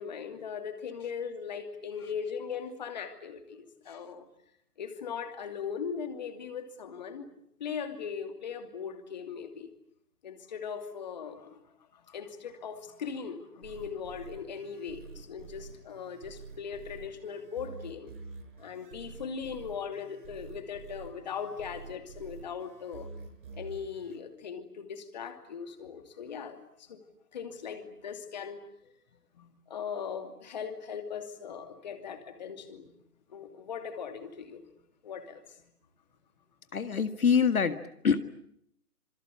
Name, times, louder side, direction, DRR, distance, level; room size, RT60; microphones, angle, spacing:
voice 1, 0.0-4.3 4.8-7.3 7.6-9.7 10.2-11.6 11.9-18.1 18.6-23.1 23.5-27.0 27.3-28.7 29.3-32.9 33.3-34.7 35.0-35.4, left 6 dB, 30° left, 8 dB, 2.8 m, -39 dB
sound 1, 13.6-24.2, right 4 dB, 35° right, 6.3 m, -48 dB
voice 2, 36.7-38.2, left 6 dB, 65° left, 10 dB, 2.0 m, -26 dB
27.0 x 23.5 x 8.5 m, 0.72 s
hypercardioid pair, 165°, 45 cm